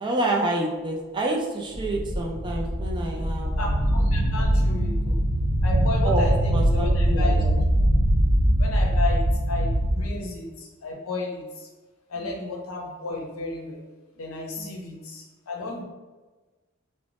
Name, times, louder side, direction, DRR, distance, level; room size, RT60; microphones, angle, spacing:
voice 1, 0.0-3.7 6.0-6.2 6.5-7.5 10.1-10.3 12.2-12.3 14.6-14.7, right 2 dB, 20° right, 0 dB, 0.3 m, -28 dB
sound 1, 1.7-10.0, equal, 55° left, 1.0 m, -22 dB
voice 2, 3.6-5.2 5.6-7.3 8.6-11.7 12.1-13.8 14.1-15.8, left 3 dB, 80° left, 0 dB, 0.6 m, -33 dB
2.4 x 2.0 x 3.2 m, 1.3 s
head